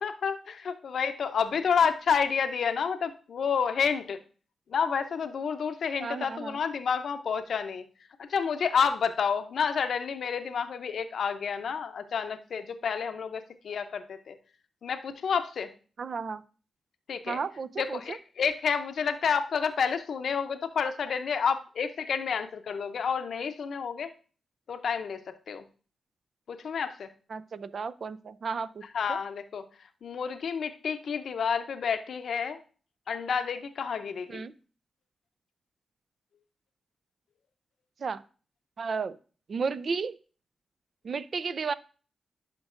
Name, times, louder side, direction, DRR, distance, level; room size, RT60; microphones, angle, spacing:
voice 1, 0.0-4.2 4.7-7.8 8.3-14.4 14.8-15.7 17.1-17.4 17.8-24.1 24.7-25.6 26.5-27.1 28.9-29.6 30.0-32.6 33.1-34.4, left 6 dB, 75° left, 9 dB, 0.6 m, -29 dB
voice 2, 6.0-6.6 16.0-16.4 17.3-18.2 27.3-28.8 29.1-29.2 34.3-34.5 38.0-38.2 38.8-39.2 39.5-40.2 41.0-41.7, right 5 dB, 60° right, 15 dB, 0.4 m, -33 dB
11.0 x 5.2 x 2.5 m, 0.39 s
cardioid pair, 65°, 0 cm